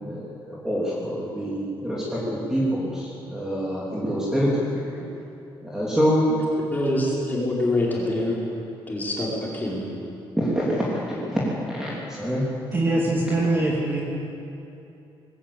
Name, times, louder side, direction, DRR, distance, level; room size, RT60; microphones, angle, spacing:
voice 1, 0.0-5.0 5.6-6.4 10.4-12.4, equal, 5° right, -7 dB, 3.0 m, -26 dB
voice 2, 6.7-8.4 8.9-9.8, left 1 dB, 20° left, -4 dB, 4.7 m, -25 dB
voice 3, 12.7-14.0, right 2 dB, 25° right, -3 dB, 2.7 m, -23 dB
20.5 x 17.0 x 8.5 m, 2.8 s
cardioid pair, 170°, 9 cm